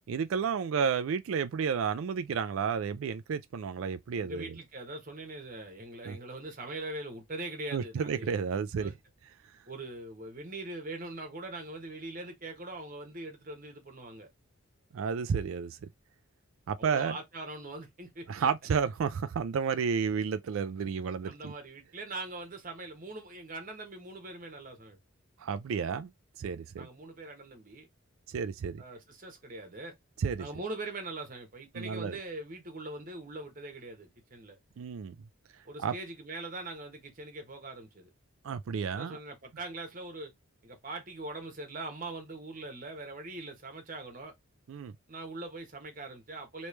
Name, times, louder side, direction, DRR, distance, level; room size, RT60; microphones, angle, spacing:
voice 1, 0.1-4.5 6.1-6.2 7.7-8.9 14.9-15.8 16.7-17.2 18.3-21.5 25.4-26.1 26.4-26.9 28.3-28.8 30.2-30.5 31.7-32.2 34.8-35.2 35.8-35.9 38.4-39.2 44.7-44.9, right 6 dB, 70° right, 0.3 m, -31 dB
voice 2, 4.2-8.3 8.8-8.9 9.7-14.3 16.8-18.5 21.2-25.0 26.8-27.9 28.8-30.0 30.4-34.6 35.6-38.1 38.9-40.3 40.6-44.3 45.1-46.7, right 2 dB, 40° right, 1.2 m, -42 dB
3.1 x 3.1 x 3.2 m
head